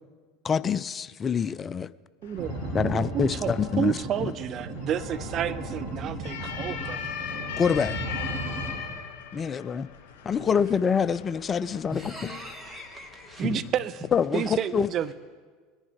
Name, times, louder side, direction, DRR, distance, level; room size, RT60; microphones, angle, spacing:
voice 1, 0.4-1.9 2.7-4.3 7.6-8.0 9.3-9.9 10.2-12.3 14.1-14.9, left 6 dB, 25° left, 16 dB, 0.3 m, -26 dB
sound 1, 2.2-13.5, left 7 dB, 60° left, 2.3 m, -40 dB
voice 2, 2.2-7.0 10.4-10.5 13.4-14.1 14.3-15.1, right 10 dB, 40° right, 12 dB, 0.5 m, -31 dB
sound 2, 2.4-8.8, right 1 dB, 65° right, 4.2 m, -35 dB
voice 3, 11.9-13.5, left 2 dB, ahead, 0 dB, 2.1 m, -36 dB
21.0 x 10.5 x 3.6 m, 1.5 s
figure-of-eight pair, 75°, 0 cm